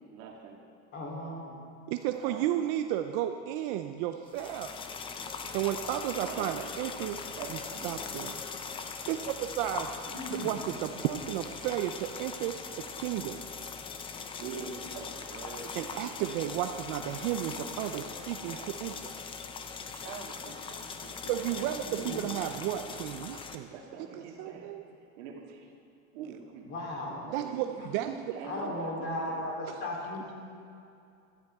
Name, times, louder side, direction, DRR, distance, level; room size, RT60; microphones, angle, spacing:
voice 1, 0.1-0.6 2.1-2.6 6.1-6.7 7.3-8.1 14.3-15.7 16.2-16.3 16.6-16.8 17.2-18.1 18.4-19.1 19.9-21.1 21.5-22.6 22.9-24.7 25.2-25.7 26.1-29.4, right 6 dB, 75° right, 0 dB, 2.1 m, -45 dB
voice 2, 0.9-1.6 10.1-10.5 21.6-22.2 26.7-27.3 28.5-30.3, left 1 dB, 35° left, -3 dB, 3.4 m, -36 dB
voice 3, 1.9-4.8 5.5-7.2 7.5-7.6 7.8-8.4 9.1-13.4 15.8-18.9 21.3-23.7 24.4-24.8 27.3-28.1 29.7-29.8, right 12 dB, 50° right, 7 dB, 0.5 m, -33 dB
sound 1, 4.3-23.6, left 5 dB, 15° left, 0.5 m, -41 dB
16.5 x 13.0 x 3.6 m, 2.5 s
supercardioid pair, 145°, 35 cm